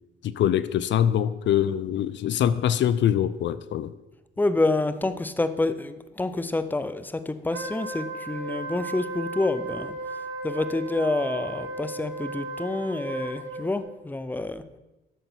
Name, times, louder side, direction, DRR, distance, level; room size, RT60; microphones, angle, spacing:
voice 1, 0.2-3.9, left 10 dB, 65° left, 15 dB, 0.6 m, -24 dB
voice 2, 4.4-9.9 10.4-14.6, left 2 dB, 10° left, 12 dB, 0.7 m, -28 dB
Wind instrument woodwind instrument, 7.5-13.8, right 2 dB, 80° right, 2.6 m, -35 dB
12.5 x 6.7 x 6.2 m, 1.0 s
cardioid pair, 90°, 20 cm